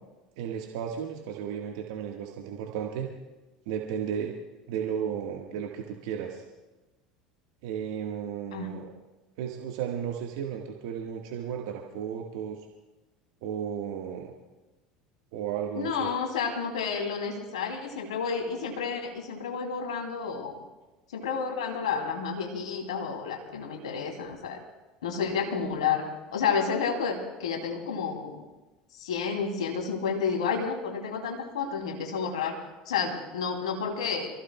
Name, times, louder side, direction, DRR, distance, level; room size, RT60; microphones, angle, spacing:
voice 1, 0.4-3.1 3.6-4.3 4.7-6.4 7.6-8.9 9.4-12.6 13.4-14.3 15.3-16.1, right 8 dB, 65° right, 1 dB, 1.5 m, -34 dB
voice 2, 15.7-20.6 21.1-24.6 25.0-26.0 26.3-28.4 28.9-32.6 32.9-34.3, left 6 dB, 75° left, 2 dB, 2.8 m, -30 dB
27.5 x 16.0 x 2.3 m, 1.1 s
hypercardioid pair, 75°, 3 cm